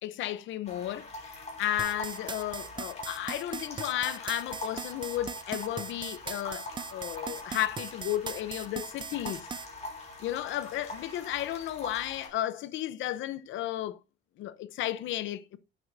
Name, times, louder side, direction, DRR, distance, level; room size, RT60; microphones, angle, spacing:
voice 1, 0.0-9.5 10.2-14.0 14.4-15.6, left 13 dB, 85° left, 0.8 m, -33 dB
sound 1, 0.6-12.3, left 2 dB, 35° left, 5.4 m, -43 dB
sound 2, 1.8-9.7, right 5 dB, 25° right, 0.5 m, -39 dB
10.5 x 9.7 x 2.6 m
cardioid pair, 115°, 19 cm